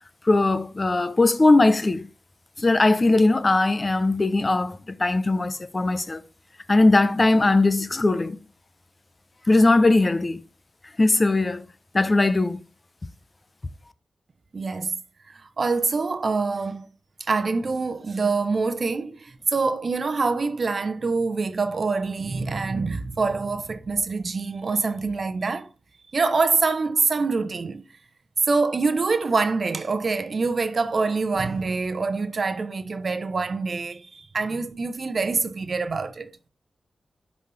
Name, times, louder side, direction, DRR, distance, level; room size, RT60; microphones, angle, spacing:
voice 1, 0.2-2.1 2.6-6.2 6.7-8.4 9.5-10.4 11.0-11.6 11.9-12.6, left 2 dB, 40° left, 0.6 m, -19 dB
voice 2, 14.5-15.0 15.3-16.9 17.2-25.7 26.1-27.8 28.4-36.3, right 4 dB, 60° right, 0.7 m, -25 dB
10.0 x 4.1 x 3.2 m
cardioid pair, 50°, 0 cm